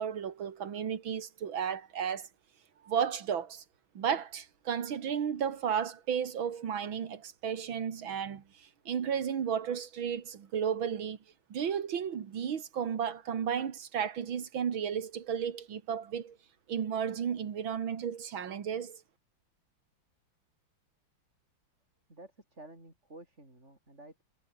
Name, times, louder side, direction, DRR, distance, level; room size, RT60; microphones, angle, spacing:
voice 1, 0.0-2.3 2.8-3.6 4.0-11.2 11.5-16.4 16.7-19.0, right 8 dB, 70° right, 2.5 m, -33 dB
voice 2, 22.1-24.2, right 1 dB, 30° right, 7.0 m, -52 dB
omnidirectional pair, 2.3 m